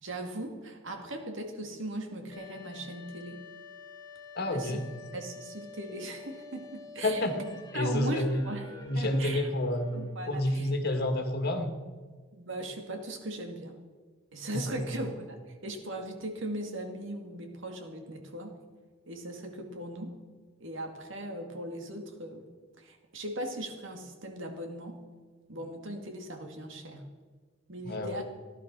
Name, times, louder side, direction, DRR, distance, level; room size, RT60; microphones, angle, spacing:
voice 1, 0.0-3.4 4.5-4.8 5.1-7.3 7.7-8.7 8.9-9.5 9.9-10.7 12.3-13.8 14.3-18.6 19.1-20.1 20.6-22.5 22.8-25.0 25.5-27.1 27.7-28.2, right 1 dB, 65° right, 4 dB, 2.4 m, -39 dB
sound 1, 2.3-10.8, left 4 dB, 20° left, 2.6 m, -49 dB
voice 2, 4.4-4.8 7.0-8.4 8.9-9.9 10.3-11.7 14.8-14.9 27.8-28.2, left 1 dB, 50° left, 6 dB, 1.9 m, -29 dB
15.5 x 11.5 x 6.2 m, 1.4 s
head